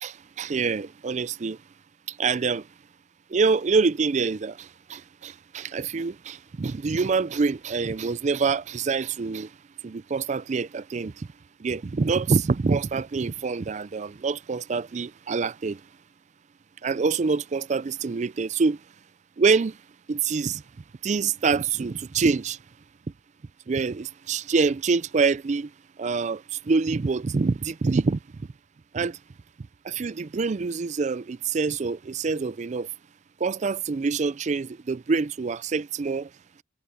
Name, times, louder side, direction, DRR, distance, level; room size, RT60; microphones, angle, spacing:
voice 1, 0.0-1.6 2.1-2.7 3.3-9.5 9.8-11.3 11.6-15.8 16.8-18.8 19.4-19.8 20.1-20.6 21.0-22.6 23.7-25.7 26.0-28.2 28.9-29.2 29.8-32.9 33.4-36.3, right 4 dB, 40° right, 0.4 m, -26 dB
head